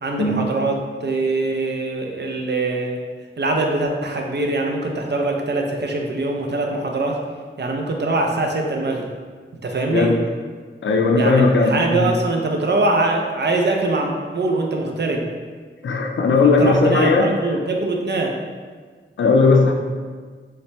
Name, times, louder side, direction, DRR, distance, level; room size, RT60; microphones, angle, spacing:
voice 1, 0.0-3.0 3.4-7.2 7.6-9.1 9.6-10.2 11.2-15.3 16.4-18.4, right 2 dB, 55° right, 1 dB, 0.5 m, -23 dB
voice 2, 10.8-12.1 15.8-17.3 19.2-19.7, left 3 dB, 65° left, 2 dB, 0.4 m, -17 dB
4.0 x 2.1 x 3.0 m, 1.6 s
wide cardioid pair, 45°, 21 cm